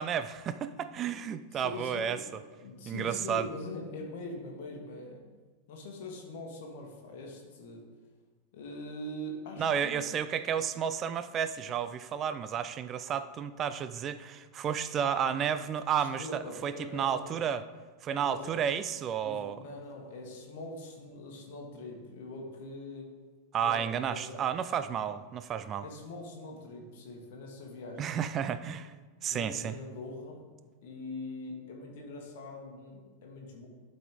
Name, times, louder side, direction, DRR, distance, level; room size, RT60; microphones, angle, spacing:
voice 1, 0.0-2.2 2.9-3.5 9.6-17.6 18.0-19.6 23.5-25.8 28.0-28.9 29.2-29.7, right 8 dB, 30° right, 12 dB, 0.3 m, -32 dB
voice 2, 1.5-2.2 2.6-5.2 5.7-7.8 8.5-10.1 16.0-17.4 18.1-18.6 19.2-23.1 23.6-24.6 25.8-28.1 29.3-30.4 30.8-33.7, left 2 dB, 50° left, 0 dB, 1.3 m, -43 dB
12.0 x 4.2 x 3.6 m, 1.3 s
figure-of-eight pair, 90°, 0 cm